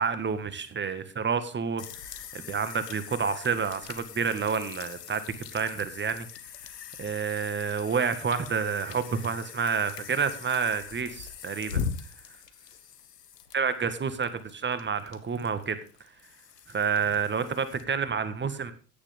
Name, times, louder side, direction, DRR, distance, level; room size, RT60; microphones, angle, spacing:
voice 1, 0.0-6.3 7.0-11.8 13.5-15.8 16.7-18.7, right 6 dB, 20° right, 11 dB, 1.7 m, -29 dB
sound 1, 1.8-17.8, left 7 dB, 75° left, 1.5 m, -41 dB
15.5 x 10.5 x 3.6 m, 0.36 s
figure-of-eight pair, 75°, 48 cm